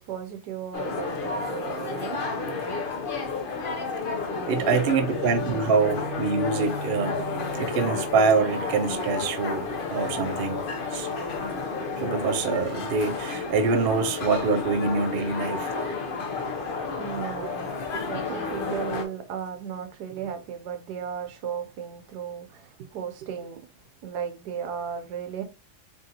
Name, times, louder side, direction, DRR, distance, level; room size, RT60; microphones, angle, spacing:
voice 1, 0.0-2.2 4.2-4.7 16.1-16.2 16.9-23.7 24.0-25.4, right 8 dB, 85° right, 1.2 m, -35 dB
sound 1, 0.7-19.1, left 4 dB, 55° left, 0.6 m, -31 dB
voice 2, 4.5-7.2 7.6-10.6 10.9-11.1 12.0-16.1, right 4 dB, 65° right, 0.6 m, -25 dB
Guitar, 5.0-12.8, equal, 30° right, 0.7 m, -42 dB
3.4 x 2.7 x 3.8 m
omnidirectional pair, 1.7 m